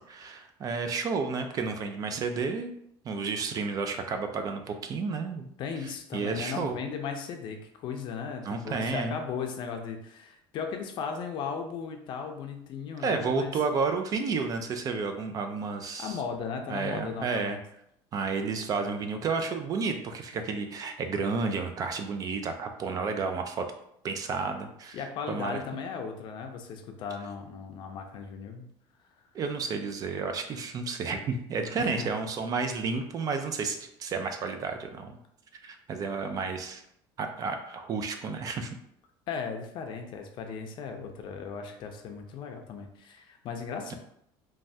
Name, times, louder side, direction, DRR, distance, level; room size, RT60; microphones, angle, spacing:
voice 1, 0.1-2.7 3.0-5.5 6.1-6.8 8.4-9.2 13.0-16.2 16.7-17.6 18.1-23.6 24.0-25.0 25.3-25.6 29.3-35.2 35.6-36.8 37.2-38.8 43.9-44.0, right 4 dB, 35° right, 6 dB, 0.3 m, -31 dB
voice 2, 5.6-13.6 16.0-17.6 24.9-28.7 31.8-32.1 39.3-43.9, left 6 dB, 50° left, 5 dB, 0.5 m, -36 dB
3.1 x 2.2 x 2.6 m, 0.72 s
supercardioid pair, 120°, 10 cm